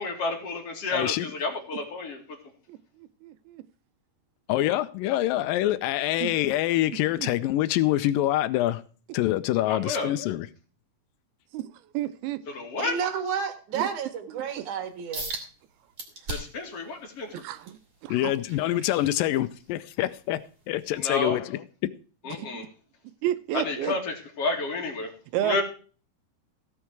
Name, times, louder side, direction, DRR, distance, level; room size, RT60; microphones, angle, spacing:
voice 1, 0.0-2.2 9.7-10.1 12.5-12.9 16.3-17.4 21.0-21.4 22.2-22.7 23.6-25.1 25.4-25.6, left 3 dB, 40° left, 2.8 m, -30 dB
voice 2, 0.9-1.3 4.5-8.8 9.1-10.5 18.1-20.4 20.7-21.9, left 14 dB, 85° left, 2.0 m, -25 dB
voice 3, 3.2-3.6 6.2-6.3 7.2-7.3 11.5-11.6 11.9-12.4 13.7-13.9 17.3-17.7 18.0-18.4 22.4-22.7 23.2-23.9 25.3-25.6, right 12 dB, 80° right, 2.5 m, -30 dB
voice 4, 12.8-15.3, right 7 dB, 55° right, 2.7 m, -31 dB
sound 1, 15.1-15.5 16.0-16.7 17.2-19.7 20.2-20.4 21.0-21.1, right 2 dB, 25° right, 3.1 m, -38 dB
17.0 x 6.4 x 4.6 m
omnidirectional pair, 4.7 m